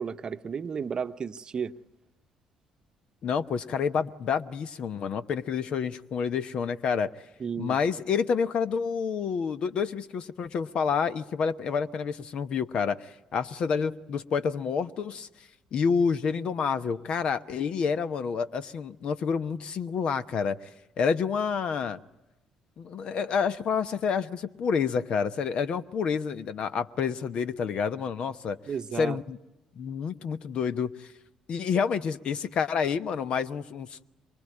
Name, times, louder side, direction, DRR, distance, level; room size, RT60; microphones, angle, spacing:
voice 1, 0.0-1.7 7.4-7.8 28.7-29.2, right 6 dB, 40° right, 0.9 m, -33 dB
voice 2, 3.2-7.1 7.6-15.3 15.7-20.7 21.0-22.0 22.8-28.6 29.0-29.4 29.8-31.1 31.5-34.1, left 6 dB, 55° left, 1.0 m, -28 dB
24.5 x 24.5 x 9.8 m
hypercardioid pair, 50°, 2 cm